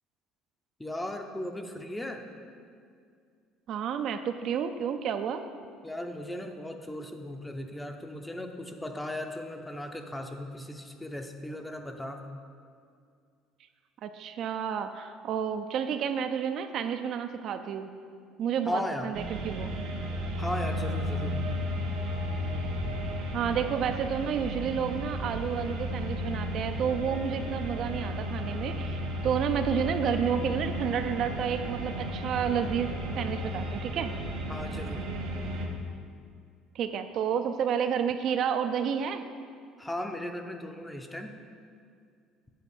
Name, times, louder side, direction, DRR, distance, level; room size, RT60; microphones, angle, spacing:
voice 1, 0.8-2.2 5.8-12.2 18.7-19.1 20.4-21.4 34.5-35.1 39.8-41.4, left 1 dB, 10° left, 5 dB, 0.6 m, -37 dB
voice 2, 3.7-5.4 14.0-17.9 18.4-19.7 23.3-34.1 36.7-39.2, right 7 dB, 55° right, 8 dB, 0.4 m, -30 dB
sound 1, 19.1-35.7, equal, 80° right, 1.5 m, -33 dB
8.4 x 4.3 x 7.2 m, 2.3 s
cardioid pair, 130°, 0 cm